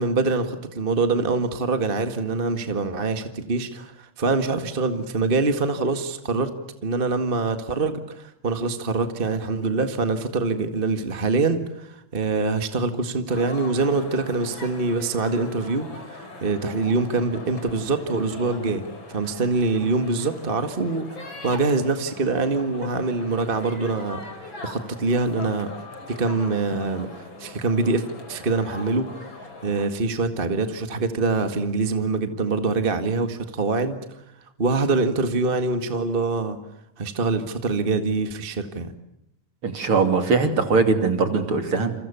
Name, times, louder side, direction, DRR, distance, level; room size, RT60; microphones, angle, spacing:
voice 1, 0.0-6.5 6.8-24.2 24.6-25.7 26.1-29.3 29.6-34.2 34.6-36.6 37.0-38.9, right 3 dB, 25° right, 8 dB, 1.3 m, -24 dB
korea baseball, 13.3-29.9, left 2 dB, 35° left, 4.7 m, -41 dB
voice 2, 39.6-41.9, right 4 dB, 40° right, 8 dB, 3.5 m, -21 dB
29.0 x 28.5 x 7.0 m, 0.80 s
omnidirectional pair, 3.7 m